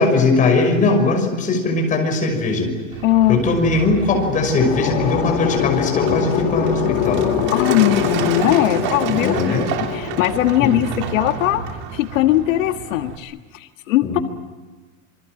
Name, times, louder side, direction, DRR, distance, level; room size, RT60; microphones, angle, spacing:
voice 1, 0.0-2.7 3.3-7.3 9.1-9.7 10.6-10.7 14.0-14.2, left 3 dB, 20° left, 3 dB, 5.9 m, -19 dB
Truck, 2.9-13.2, right 8 dB, 40° right, 3.2 m, -29 dB
voice 2, 3.0-3.4 7.5-11.6 11.9-14.2, left 14 dB, 80° left, 6 dB, 1.6 m, -19 dB
sound 1, 4.1-11.2, left 10 dB, 55° left, 2.5 m, -24 dB
28.0 x 24.0 x 7.8 m, 1.3 s
supercardioid pair, 170°, 38 cm